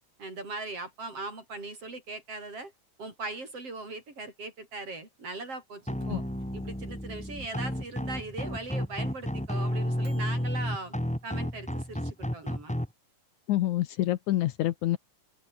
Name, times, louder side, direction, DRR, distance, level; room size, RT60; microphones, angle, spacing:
voice 1, 0.2-2.7 3.0-6.2 6.5-11.0 11.2-12.8, right 3 dB, 45° right, 7.9 m, -39 dB
Microwave oven, 5.8-10.6, right 4 dB, 65° right, 8.2 m, -53 dB
sound 1, 5.9-12.9, equal, ahead, 2.6 m, -32 dB
voice 2, 13.5-15.0, left 14 dB, 75° left, 2.2 m, -27 dB
open air
omnidirectional pair, 3.7 m